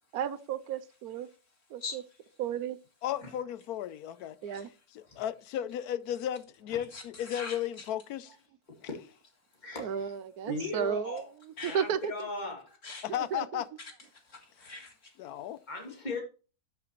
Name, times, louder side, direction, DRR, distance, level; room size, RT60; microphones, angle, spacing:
voice 1, 0.1-1.3 1.7-1.8 2.4-2.8 4.4-4.7 9.8-11.2 11.6-12.1 13.1-13.6, right 8 dB, 80° right, 1.2 m, -33 dB
voice 2, 3.0-4.6 4.9-8.3 13.0-13.7 15.2-15.6, left 11 dB, 80° left, 1.1 m, -35 dB
voice 3, 4.4-4.8 6.9-7.9 11.6-11.8 12.8-13.1 13.8-15.2, left 4 dB, 55° left, 2.2 m, -44 dB
voice 4, 9.6-10.1 10.4-11.2 11.7-12.7 15.7-16.2, left 2 dB, 30° left, 2.7 m, -38 dB
12.5 x 6.9 x 3.1 m
omnidirectional pair, 1.6 m